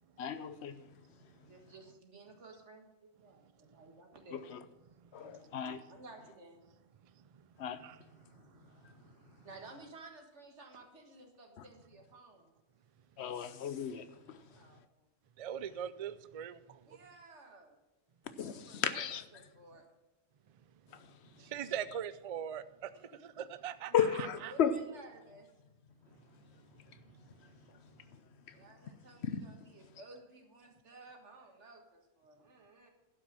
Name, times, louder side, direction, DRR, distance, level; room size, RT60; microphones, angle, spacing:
voice 1, 0.2-0.9 4.3-4.6 5.1-5.8 7.6-7.8 8.8-8.9 13.2-14.4 18.3-19.2 20.9-21.1 23.9-24.7 28.5-28.6 29.2-29.4, left 8 dB, 70° left, 1.0 m, -34 dB
voice 2, 1.4-4.5 5.2-5.6 5.9-6.6 9.4-12.5 14.5-15.1 16.8-17.8 18.5-19.1 19.3-19.9 22.9-23.2 23.9-25.5 28.5-32.9, right 3 dB, 90° right, 1.9 m, -55 dB
voice 3, 7.0-7.4 7.8-8.0 8.3-9.5 15.4-17.0 21.1-23.9 24.2-24.5 27.1-27.2, right 9 dB, 50° right, 0.4 m, -43 dB
11.5 x 6.1 x 7.3 m
omnidirectional pair, 1.2 m